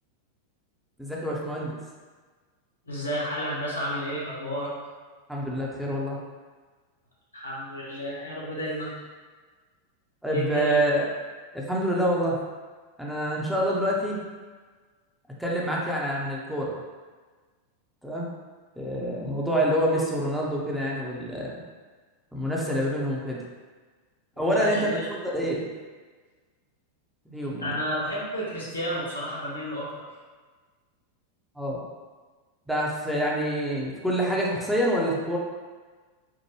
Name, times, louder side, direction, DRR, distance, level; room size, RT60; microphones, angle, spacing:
voice 1, 1.0-1.8 5.3-6.2 10.2-11.1 11.5-12.4 13.0-14.2 15.4-16.8 18.0-18.3 18.8-21.5 22.3-23.4 24.4-25.0 25.2-25.7 27.3-27.7 31.6-31.8 32.7-35.4, equal, ahead, -4 dB, 0.6 m, -26 dB
voice 2, 2.9-4.7 7.3-8.9 10.3-10.8 24.4-25.1 27.6-30.1, equal, 80° left, -6 dB, 1.1 m, -31 dB
4.6 x 2.1 x 3.1 m, 1.4 s
figure-of-eight pair, 90°, 0 cm